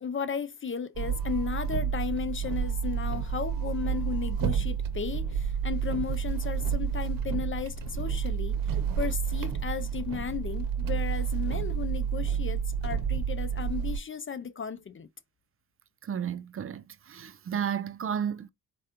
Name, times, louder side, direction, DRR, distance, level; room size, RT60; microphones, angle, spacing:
voice 1, 0.0-15.1, left 6 dB, 35° left, 0.5 m, -35 dB
sound 1, 1.0-14.0, right 7 dB, 65° right, 0.8 m, -30 dB
voice 2, 16.1-18.5, right 8 dB, 40° right, 0.5 m, -32 dB
4.8 x 2.2 x 2.9 m
supercardioid pair, 55°, 36 cm